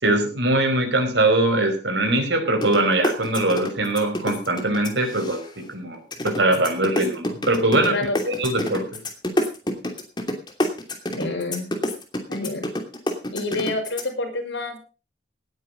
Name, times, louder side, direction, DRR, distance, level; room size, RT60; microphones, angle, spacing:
voice 1, 0.0-7.9 8.3-8.8, right 2 dB, 75° right, 5 dB, 5.2 m, -22 dB
sound 1, 2.6-2.8 3.0-5.6 6.1-14.0, left 1 dB, 25° left, 2.8 m, -26 dB
voice 2, 7.8-8.2 11.2-11.7 12.3-12.7 13.3-14.8, left 2 dB, 80° left, 3 dB, 5.7 m, -28 dB
18.5 x 9.9 x 5.2 m, 0.33 s
head